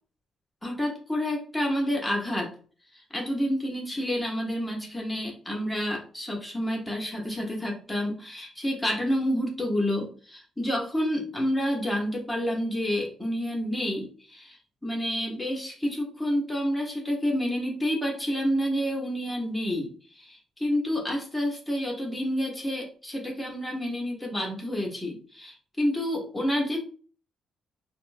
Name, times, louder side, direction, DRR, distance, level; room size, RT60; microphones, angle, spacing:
voice 1, 0.6-2.5 3.1-14.6 14.8-26.8, equal, 10° left, -1 dB, 0.9 m, -29 dB
4.2 x 2.1 x 2.5 m, 0.41 s
cardioid pair, 90°, 0 cm